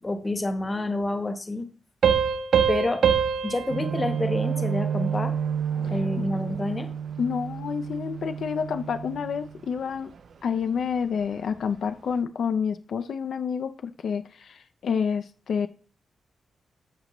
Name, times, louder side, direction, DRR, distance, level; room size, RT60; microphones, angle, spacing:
voice 1, 0.0-1.7 2.7-3.0 3.4-5.3 5.9-6.9, left 2 dB, 20° left, 8 dB, 1.0 m, -28 dB
sound 1, 2.0-5.3, right 7 dB, 75° right, 1.2 m, -25 dB
sound 2, 3.7-10.2 10.5-10.8 11.2-11.7 12.1-12.2, right 7 dB, 55° right, 0.5 m, -31 dB
voice 2, 7.2-10.1 10.4-15.7, left 6 dB, 65° left, 9 dB, 0.5 m, -28 dB
13.5 x 6.5 x 3.0 m, 0.40 s
wide cardioid pair, 170°, 0 cm